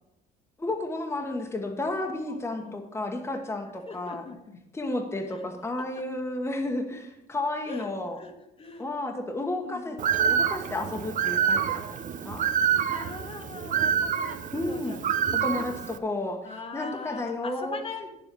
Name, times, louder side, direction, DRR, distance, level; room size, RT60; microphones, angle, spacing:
voice 1, 0.6-4.3 4.7-8.2 8.8-10.0 10.3-12.4 14.5-15.0 15.4-16.4 16.7-17.8, left 2 dB, 15° left, 2 dB, 1.3 m, -32 dB
voice 2, 2.3-2.7 3.8-4.6 5.3-5.4 7.7-7.9 8.2-8.3 8.6-8.9 9.6-10.0 12.8-15.4 16.4-18.1, left 3 dB, 35° left, 4 dB, 1.5 m, -41 dB
Bird, 10.0-16.0, right 7 dB, 50° right, 0.8 m, -27 dB
9.0 x 7.5 x 6.8 m, 0.87 s
cardioid pair, 110°, 17 cm